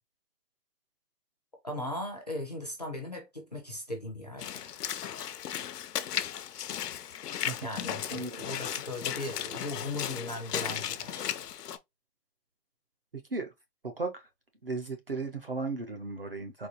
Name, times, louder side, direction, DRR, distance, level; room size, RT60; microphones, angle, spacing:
voice 1, 1.6-4.7 7.6-11.3, left 1 dB, 25° left, 0.5 m, -38 dB
Walk footsteps / Splash splatter, 4.4-11.8, left 10 dB, 75° left, 0.6 m, -36 dB
voice 2, 13.8-14.3 14.6-16.7, right 3 dB, 40° right, 0.5 m, -35 dB
4.1 x 2.2 x 2.7 m
hypercardioid pair, 165°, 48 cm